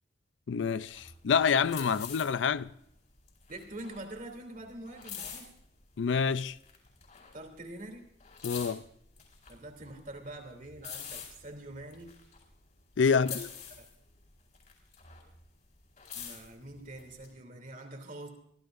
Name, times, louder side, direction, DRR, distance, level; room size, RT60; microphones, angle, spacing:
voice 1, 0.5-2.7 6.0-6.6 8.4-8.8 13.0-13.5, left 6 dB, 80° left, 0.4 m, -27 dB
sound 1, 0.8-6.0 6.4-7.7 8.0-12.9 13.2-15.5 15.8-17.3, left 8 dB, 45° left, 4.7 m, -46 dB
voice 2, 3.5-5.5 7.3-8.0 9.5-12.1 13.0-13.5 13.8-13.9 16.1-18.3, right 1 dB, 45° right, 2.9 m, -45 dB
24.0 x 15.5 x 2.6 m
head